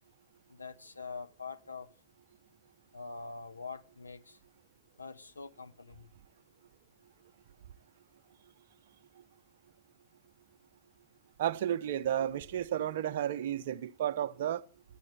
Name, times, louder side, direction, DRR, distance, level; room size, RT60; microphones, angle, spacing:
voice 1, 0.5-1.9 2.9-4.4 5.0-6.1, left 4 dB, 80° left, 0.8 m, -44 dB
voice 2, 11.4-14.6, right 10 dB, 55° right, 0.7 m, -32 dB
12.0 x 8.3 x 8.8 m
figure-of-eight pair, 90°, 0 cm